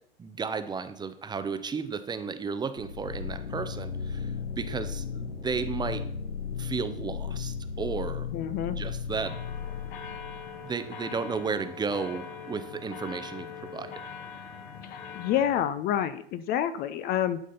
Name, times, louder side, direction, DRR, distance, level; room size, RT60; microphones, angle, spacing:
voice 1, 0.2-6.0 6.6-8.3 8.6-9.3 10.6-13.9, right 5 dB, 15° right, 10 dB, 0.7 m, -33 dB
sound 1, 2.8-10.6, left 6 dB, 90° left, 0.6 m, -35 dB
voice 2, 8.3-8.8 14.8-17.4, left 10 dB, 30° left, 12 dB, 0.6 m, -28 dB
sound 2, 9.2-15.6, left 6 dB, 55° left, 1.6 m, -42 dB
11.5 x 5.0 x 5.6 m, 0.64 s
figure-of-eight pair, 90°, 31 cm